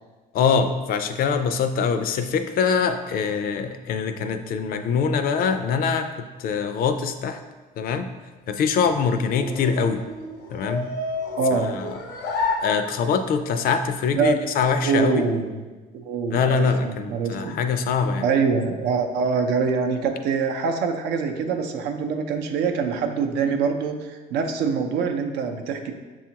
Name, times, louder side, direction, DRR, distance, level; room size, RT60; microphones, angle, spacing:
voice 1, 0.3-7.4 7.8-8.1 8.5-10.0 10.5-10.9 11.7-12.0 12.6-15.3 16.3-18.3, left 6 dB, 60° left, 8 dB, 0.4 m, -23 dB
sound 1, 8.4-13.4, left 3 dB, 85° left, 0.8 m, -31 dB
voice 2, 11.4-11.7 14.1-14.4 14.8-15.6 15.9-17.6 18.2-25.9, right 5 dB, 85° right, 5 dB, 0.5 m, -24 dB
6.9 x 2.4 x 2.8 m, 1.3 s
cardioid pair, 110°, 17 cm